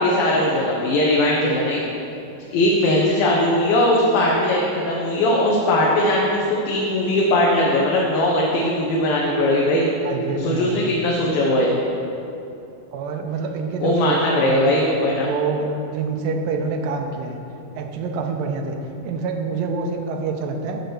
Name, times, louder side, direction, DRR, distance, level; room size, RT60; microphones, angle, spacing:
voice 1, 0.0-1.8 2.5-9.9 10.3-11.7 13.8-15.3, left 1 dB, 85° left, -3 dB, 2.6 m, -19 dB
voice 2, 10.0-10.8 12.9-14.7 15.2-17.4 17.8-20.8, right 4 dB, 85° right, 4 dB, 2.4 m, -26 dB
6.6 x 6.3 x 6.6 m, 2.8 s
omnidirectional pair, 4.0 m